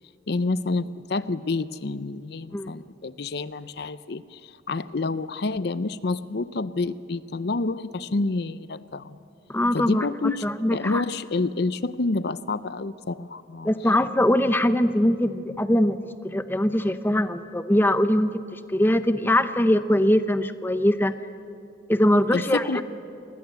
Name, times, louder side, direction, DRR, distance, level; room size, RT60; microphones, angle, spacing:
voice 1, 0.3-9.2 9.7-13.7 22.3-22.8, left 3 dB, 55° left, 15 dB, 0.6 m, -28 dB
voice 2, 9.5-10.1 10.4-11.0 13.6-16.0 16.2-21.1 21.9-22.8, left 1 dB, 10° left, 11 dB, 0.7 m, -22 dB
28.0 x 21.0 x 8.1 m, 2.7 s
head